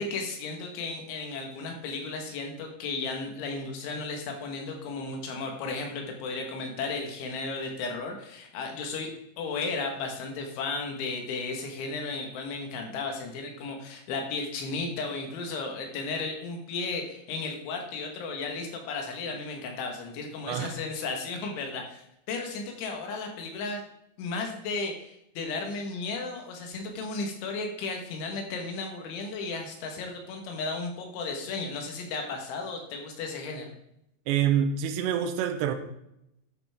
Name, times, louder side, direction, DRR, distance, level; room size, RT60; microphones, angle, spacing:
voice 1, 0.0-23.8 24.2-33.7, left 3 dB, 85° left, 3 dB, 4.0 m, -34 dB
voice 2, 20.5-20.8 34.3-35.7, right 9 dB, 75° right, 6 dB, 3.0 m, -26 dB
11.0 x 10.0 x 3.6 m, 0.80 s
omnidirectional pair, 5.3 m